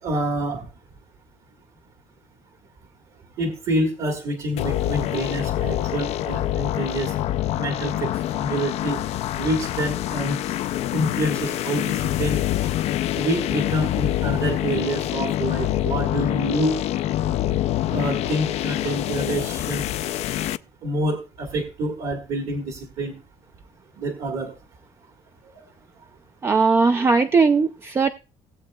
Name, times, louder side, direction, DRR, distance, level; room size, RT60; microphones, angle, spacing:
voice 1, 0.0-0.7 3.4-7.1 7.6-9.0 9.4-10.6 10.9-12.4 13.2-16.7 17.9-19.8 20.8-23.1 24.0-24.5 25.5-25.6, right 1 dB, 60° right, 1.7 m, -27 dB
sound 1, 4.6-20.6, left 13 dB, 60° left, 0.4 m, -26 dB
voice 2, 26.4-28.1, right 4 dB, 20° right, 0.4 m, -18 dB
19.0 x 7.5 x 2.3 m
cardioid pair, 160°, 12 cm